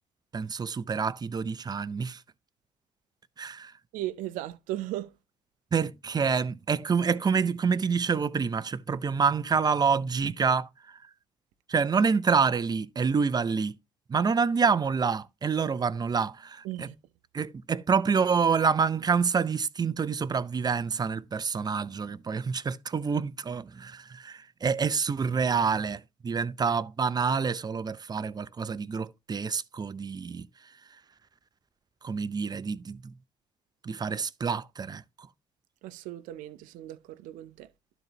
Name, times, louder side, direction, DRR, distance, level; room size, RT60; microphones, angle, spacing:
voice 1, 0.3-2.2 3.4-3.7 5.7-11.1 11.7-13.8 14.1-16.9 17.3-30.5 32.0-33.1 33.8-35.0, right 5 dB, 30° right, 0.6 m, -27 dB
voice 2, 3.9-5.2 16.6-17.0 35.8-37.7, right 14 dB, 75° right, 0.6 m, -37 dB
12.0 x 4.0 x 2.9 m
hypercardioid pair, 60°, 14 cm